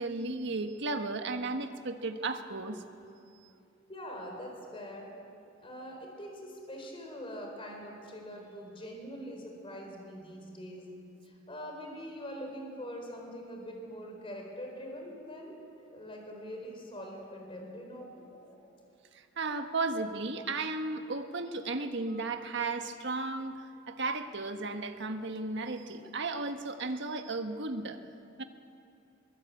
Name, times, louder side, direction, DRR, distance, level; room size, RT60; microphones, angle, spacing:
voice 1, 0.0-2.8 19.1-23.6 23.9-28.0 28.4-28.5, right 3 dB, 60° right, 6 dB, 1.5 m, -34 dB
voice 2, 3.9-5.1 5.6-10.9 11.2-18.7, equal, 25° left, 1 dB, 4.3 m, -43 dB
23.0 x 22.0 x 8.5 m, 2.6 s
head